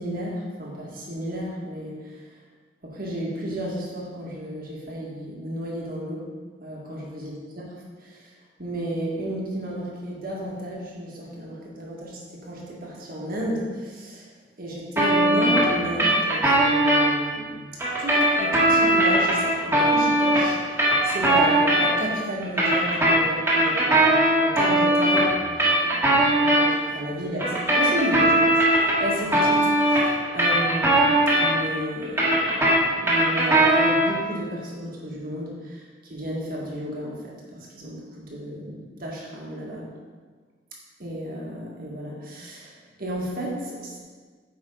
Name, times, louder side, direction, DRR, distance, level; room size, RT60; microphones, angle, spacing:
voice 1, 0.0-2.2 2.8-6.3 6.6-8.3 8.6-14.3 14.6-17.6 18.0-37.4 37.7-39.9 41.0-44.0, right 1 dB, 55° right, -3 dB, 1.9 m, -33 dB
sound 1, 15.0-17.1 17.8-22.1 22.4-26.7 27.4-31.7 32.0-34.2, right 1 dB, 15° right, 1.8 m, -20 dB
8.9 x 5.6 x 3.9 m, 1.5 s
head